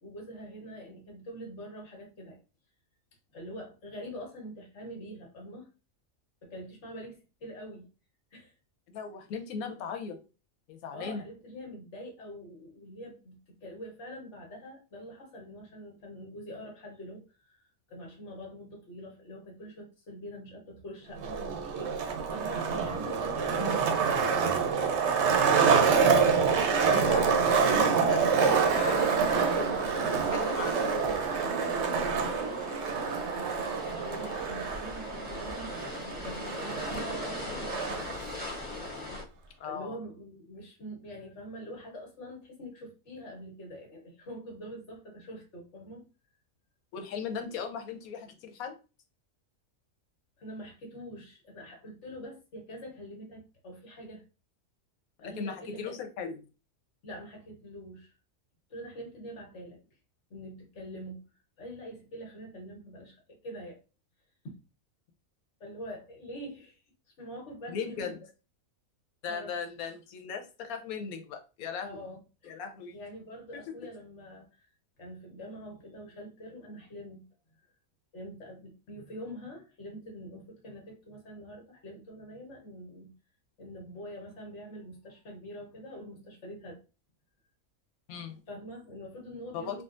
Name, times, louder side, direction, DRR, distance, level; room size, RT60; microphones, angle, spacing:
voice 1, 0.0-2.4 3.3-5.7 6.4-7.9 8.3-8.5 10.9-22.0 22.3-24.4 26.7-27.7 29.3-32.6 33.9-37.8 39.6-46.1 50.4-54.2 55.2-55.9 57.0-58.1 58.7-59.8 60.3-61.2 61.6-63.8 64.4-64.5 65.6-66.8 67.2-68.2 69.3-69.5 71.8-72.2 72.4-72.5 72.9-74.5 75.0-77.2 78.1-83.1 83.6-86.8 88.5-89.8, equal, 55° left, 0 dB, 1.4 m, -44 dB
voice 2, 8.9-10.2 10.7-11.2 23.5-23.8 26.8-29.5 30.3-31.3 39.6-40.0 46.9-48.7 55.2-56.3 67.7-68.2 69.2-72.0 72.4-73.0 73.5-73.6 88.1-88.4 89.5-89.8, left 6 dB, 85° left, 5 dB, 1.1 m, -38 dB
Skateboard, 21.2-38.2, right 6 dB, 65° right, 0.8 m, -27 dB
sound 1, 28.2-39.2, left 2 dB, 10° right, 0.8 m, -40 dB
3.7 x 2.3 x 2.4 m, 0.32 s
omnidirectional pair, 1.5 m